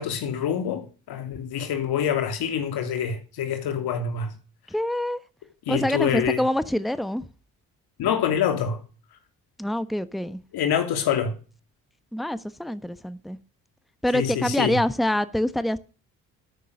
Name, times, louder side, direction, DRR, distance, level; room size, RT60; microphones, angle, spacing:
voice 1, 0.0-4.3 5.7-6.4 8.0-8.8 10.5-11.3 14.1-14.8, left 8 dB, 70° left, 3.0 m, -26 dB
voice 2, 4.7-5.2 5.7-7.3 9.6-10.4 12.1-13.4 14.0-15.8, left 1 dB, ahead, 1.2 m, -25 dB
13.0 x 9.9 x 6.6 m
hypercardioid pair, 55°, 39 cm